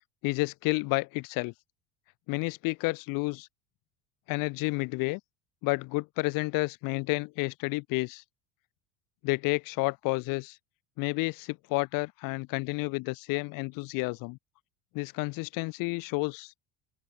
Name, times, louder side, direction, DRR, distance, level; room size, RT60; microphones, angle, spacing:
voice 1, 0.2-1.5 2.3-3.5 4.3-5.2 5.6-8.2 9.2-10.6 11.0-14.4 14.9-16.5, left 26 dB, 70° left, 4.0 m, -30 dB
open air
supercardioid pair, 100°, 35 cm